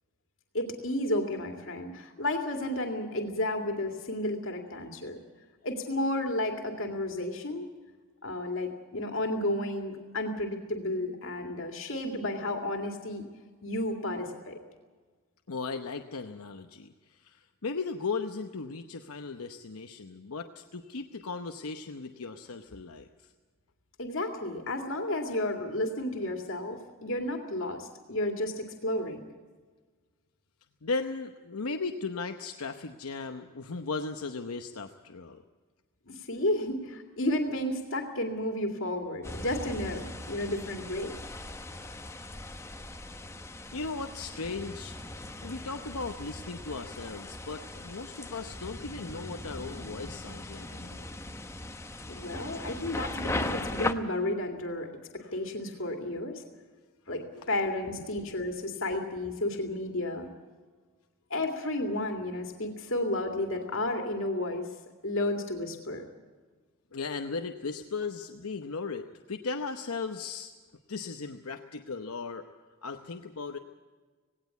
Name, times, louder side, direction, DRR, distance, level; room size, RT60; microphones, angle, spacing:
voice 1, 0.5-5.2 5.6-7.7 8.2-13.2 13.6-14.6 24.0-29.2 36.1-41.2 52.1-56.4 57.1-60.3 61.3-64.7 65.0-66.1, left 1 dB, 65° left, 3 dB, 2.3 m, -32 dB
voice 2, 15.5-23.1 30.8-35.4 43.7-45.0 45.4-51.1 57.3-57.5 58.2-58.8 66.9-70.5 70.9-72.5 72.8-73.6, left 4 dB, 90° left, 6 dB, 0.9 m, -37 dB
sound 1, 39.2-53.9, left 2 dB, 15° left, 0.8 m, -39 dB
18.0 x 17.5 x 8.3 m, 1.4 s
head